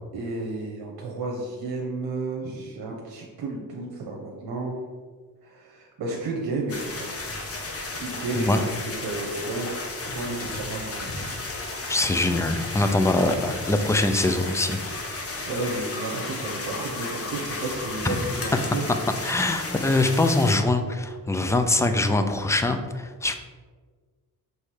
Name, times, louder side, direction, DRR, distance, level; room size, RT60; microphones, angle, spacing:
voice 1, 0.1-4.8 5.4-7.1 7.8-9.7 10.0-11.1 15.5-18.8, right 2 dB, 90° right, -2 dB, 1.0 m, -32 dB
sound 1, 6.7-20.6, left 2 dB, 40° left, 0.9 m, -34 dB
voice 2, 11.9-14.8 18.0-18.2 19.2-23.3, left 2 dB, 10° left, 7 dB, 0.3 m, -23 dB
6.5 x 3.3 x 4.8 m, 1.5 s
wide cardioid pair, 140°, 37 cm